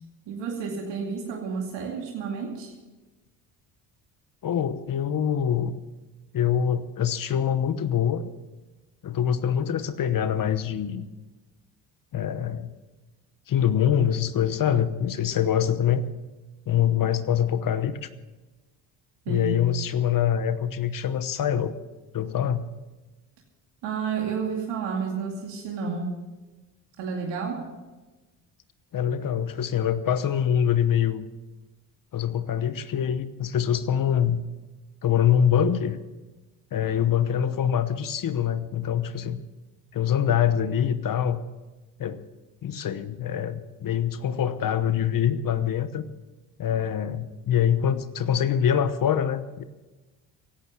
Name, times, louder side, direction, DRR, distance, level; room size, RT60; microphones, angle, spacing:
voice 1, 0.3-2.7 19.3-19.6 23.8-26.2 27.0-27.7, right 5 dB, 75° right, 0 dB, 2.4 m, -31 dB
voice 2, 4.4-5.7 6.3-8.3 9.0-11.1 12.1-12.7 13.5-16.0 16.7-18.1 19.3-21.7 22.1-22.7 28.9-31.3 32.1-34.4 35.0-36.0 36.7-39.4 39.9-41.4 42.0-42.2 42.6-46.1 46.6-49.6, left 9 dB, 50° left, 12 dB, 1.1 m, -24 dB
16.5 x 11.5 x 6.2 m, 1.2 s
supercardioid pair, 85°, 44 cm